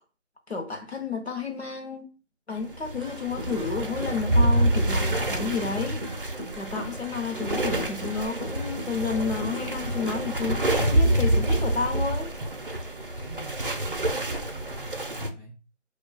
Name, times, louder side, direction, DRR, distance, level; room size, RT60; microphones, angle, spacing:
voice 1, 0.5-2.1 2.5-6.0 6.6-12.3, left 5 dB, 60° left, 0.8 m, -31 dB
sound 1, 2.7-15.3, right 1 dB, 45° right, 0.6 m, -27 dB
sound 2, 3.0-3.7 4.0-5.7 6.0-7.7 8.0-9.7 10.0-10.9, equal, 25° right, 0.9 m, -39 dB
voice 2, 13.1-15.5, right 3 dB, 5° left, 1.0 m, -45 dB
4.6 x 2.3 x 2.2 m
figure-of-eight pair, 170°, 37 cm